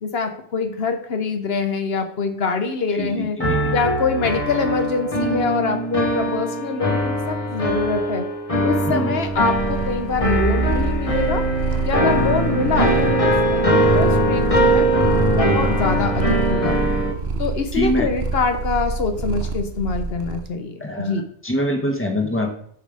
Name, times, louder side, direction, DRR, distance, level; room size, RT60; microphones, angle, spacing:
voice 1, 0.0-3.4 3.7-8.3 8.6-11.4 11.8-15.1 15.4-16.8 17.4-21.2, left 4 dB, 75° left, 7 dB, 1.1 m, -24 dB
voice 2, 2.9-3.7 8.9-9.2 17.7-18.1 20.8-22.5, equal, 10° left, 2 dB, 1.3 m, -24 dB
sound 1, 3.4-17.1, right 1 dB, 35° left, 1.4 m, -21 dB
Purr, 9.2-20.5, right 3 dB, 80° right, 1.1 m, -27 dB
7.1 x 5.4 x 6.6 m, 0.65 s
omnidirectional pair, 1.0 m